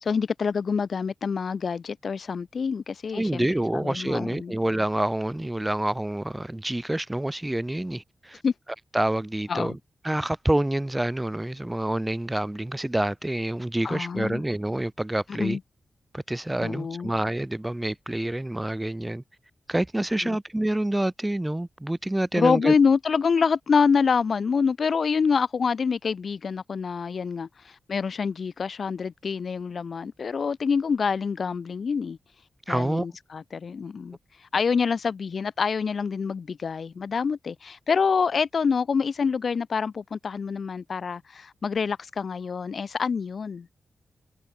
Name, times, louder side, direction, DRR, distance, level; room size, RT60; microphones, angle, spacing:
voice 1, 0.0-3.5 3.7-4.5 8.4-8.5 9.5-9.8 13.8-14.4 15.3-15.6 16.6-17.1 20.2-20.4 22.3-27.5 27.9-32.2 32.7-34.2 34.5-43.7, left 5 dB, 60° left, 1.7 m, -26 dB
voice 2, 3.1-8.4 8.9-9.8 10.0-15.6 16.1-19.2 19.7-22.7 32.7-33.1, right 1 dB, 10° right, 1.6 m, -27 dB
cardioid pair, 90°, 0 cm